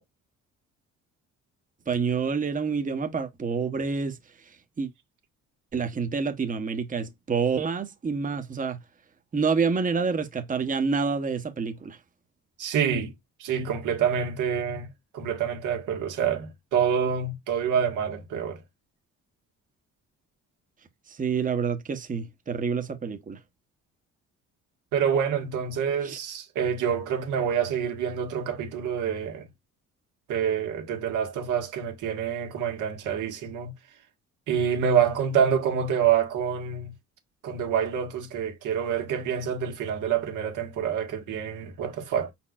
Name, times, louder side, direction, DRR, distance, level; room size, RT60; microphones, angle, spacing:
voice 1, 1.9-4.2 4.8-4.9 5.7-8.8 9.3-12.0 21.2-23.4 26.0-26.2, right 5 dB, 25° right, 0.9 m, -27 dB
voice 2, 12.6-13.1 13.4-14.9 15.1-18.6 24.9-29.5 30.3-33.7 34.5-36.9 37.4-42.3, right 8 dB, 90° right, 1.5 m, -27 dB
5.1 x 4.3 x 2.3 m
cardioid pair, 90°, 30 cm